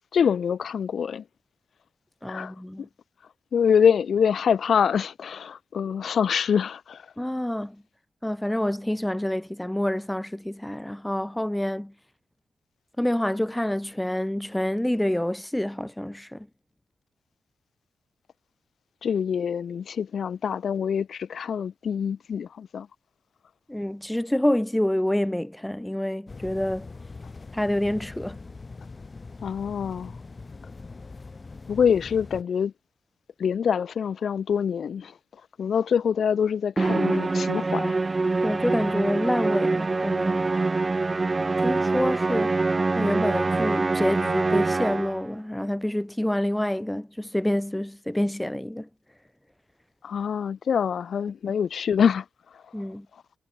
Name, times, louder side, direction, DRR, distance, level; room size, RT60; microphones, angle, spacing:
voice 1, 0.1-1.2 2.3-2.9 3.5-7.1 19.0-22.9 29.4-30.2 31.7-32.7 33.4-35.1 35.6-38.0 50.0-52.2 52.5-52.6, left 7 dB, 65° left, 2.7 m, -25 dB
voice 2, 2.2-2.9 7.2-7.8 8.2-11.9 13.0-16.5 23.7-26.9 27.5-28.4 38.4-40.5 41.6-42.6 42.9-48.9 51.5-51.6 52.7-53.1, left 1 dB, 5° left, 2.0 m, -27 dB
sound 1, 26.3-32.4, left 3 dB, 30° left, 2.1 m, -42 dB
Musical instrument, 36.8-45.3, right 3 dB, 30° right, 1.6 m, -24 dB
cardioid pair, 90°, 0 cm